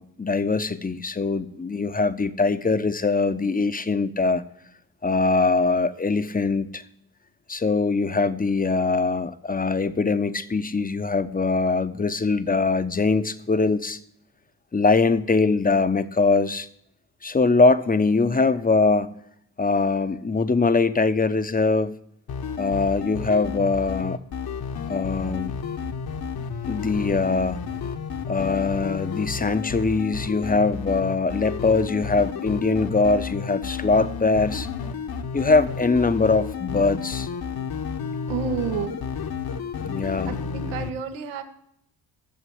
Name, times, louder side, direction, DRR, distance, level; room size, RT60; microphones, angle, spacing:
voice 1, 0.0-4.4 5.0-6.8 7.5-14.0 14.7-16.7 17.2-19.2 19.6-22.0 22.6-24.2 24.9-25.5 26.7-27.6 28.3-34.7 35.3-37.3 39.8-40.3, left 3 dB, 15° left, 12 dB, 0.9 m, -22 dB
sound 1, 22.3-40.9, left 6 dB, 50° left, 1.3 m, -31 dB
voice 2, 38.3-39.0 40.0-41.4, right 6 dB, 75° right, 7 dB, 1.5 m, -31 dB
14.0 x 7.3 x 7.9 m, 0.73 s
hypercardioid pair, 50°, 49 cm